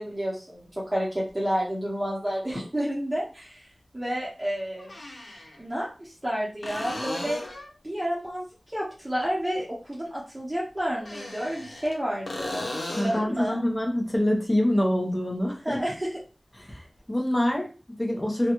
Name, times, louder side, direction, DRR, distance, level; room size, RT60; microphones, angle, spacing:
voice 1, 0.0-3.7 3.9-4.9 5.6-7.4 7.8-13.6 15.6-16.1, equal, 20° right, -6 dB, 0.8 m, -30 dB
sound 1, 1.3-1.4 3.4-3.5 4.8-5.6 6.6-7.8 10.9-12.0 12.3-13.3 17.0-17.1, left 2 dB, 80° left, 0.7 m, -36 dB
voice 2, 12.9-15.8 16.5-18.5, left 1 dB, 25° left, 1 dB, 0.7 m, -26 dB
2.4 x 2.2 x 2.9 m, 0.35 s
wide cardioid pair, 45°, 0 cm